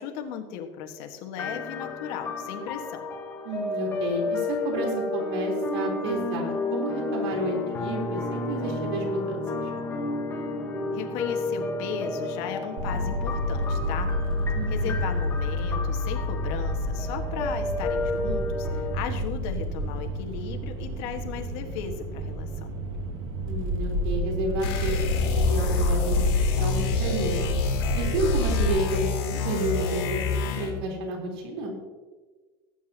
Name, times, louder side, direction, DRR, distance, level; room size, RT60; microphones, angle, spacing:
voice 1, 0.0-3.0 10.9-14.1 14.7-22.7, left 8 dB, 50° left, 5 dB, 1.5 m, -36 dB
sound 1, 1.4-19.0, left 3 dB, 15° left, 1.3 m, -32 dB
voice 2, 3.4-9.7 14.5-14.9 23.4-27.5 27.9-31.7, right 1 dB, 80° right, 0 dB, 3.7 m, -31 dB
sound 2, 12.8-28.7, equal, 60° right, 2.3 m, -29 dB
sound 3, 24.6-30.8, left 5 dB, 70° left, 3.7 m, -27 dB
18.5 x 9.1 x 2.9 m, 1.3 s
supercardioid pair, 165°, 13 cm